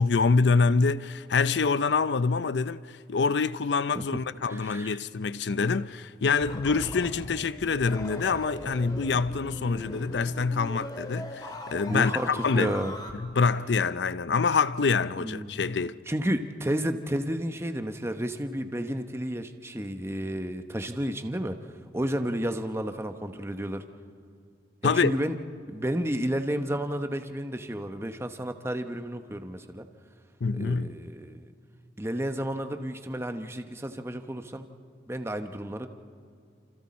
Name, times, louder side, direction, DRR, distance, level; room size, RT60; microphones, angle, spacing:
voice 1, 0.0-12.7 13.1-16.0 24.8-25.1 30.4-31.0, left 4 dB, 75° left, 0.5 m, -26 dB
voice 2, 4.5-5.0 11.9-12.9 15.2-15.6 16.1-21.6 21.9-23.8 24.8-25.4 25.7-29.8 30.5-31.5 32.0-34.7 35.1-35.9, equal, 15° right, 0.9 m, -31 dB
sound 1, 6.4-13.1, left 1 dB, 25° left, 2.2 m, -40 dB
29.5 x 27.5 x 4.3 m
head